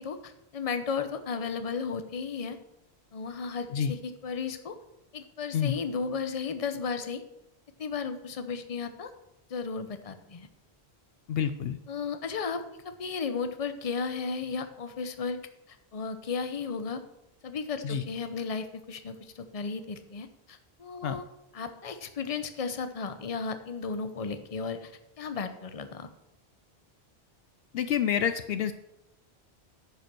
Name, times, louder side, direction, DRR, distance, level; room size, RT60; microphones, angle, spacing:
voice 1, 0.0-2.6 3.1-4.8 5.1-7.2 7.8-9.1 9.5-10.5 11.9-15.4 15.7-17.0 17.4-21.2 21.5-24.9 25.2-26.1, left 5 dB, 35° left, 9 dB, 0.8 m, -34 dB
voice 2, 11.3-11.8 17.8-18.0 21.0-21.2 27.7-28.7, left 8 dB, 70° left, 11 dB, 0.8 m, -28 dB
10.0 x 5.5 x 6.0 m, 0.90 s
omnidirectional pair, 1.1 m